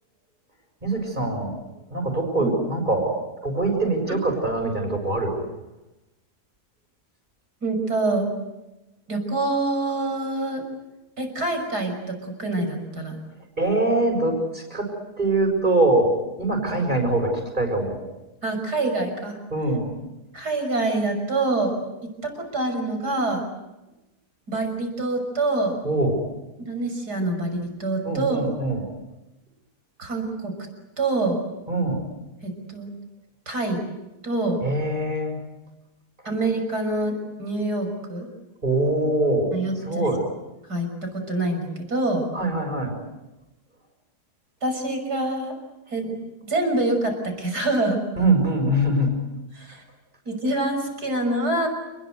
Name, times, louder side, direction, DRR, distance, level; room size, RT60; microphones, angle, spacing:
voice 1, 0.8-1.6 1.9-3.1 3.4-5.4 13.6-14.9 15.2-18.0 19.5-19.9 25.8-26.2 28.0-28.8 31.7-32.1 34.6-35.4 38.6-39.5 39.8-40.2 42.3-42.9 48.1-49.3, right 2 dB, 30° right, 3 dB, 6.8 m, -23 dB
voice 2, 7.6-8.3 9.1-10.6 11.2-13.2 18.4-19.4 20.3-21.8 22.2-23.4 24.5-25.8 26.6-28.4 30.0-30.5 31.0-31.4 32.4-32.9 33.5-33.8 34.2-34.6 36.2-38.3 39.5-40.1 40.7-40.9 41.3-42.3 44.6-45.5 45.9-46.1 46.4-48.0 49.5-49.8 50.3-51.7, right 2 dB, 75° right, 5 dB, 6.6 m, -25 dB
29.5 x 21.0 x 8.1 m, 1.0 s
omnidirectional pair, 1.7 m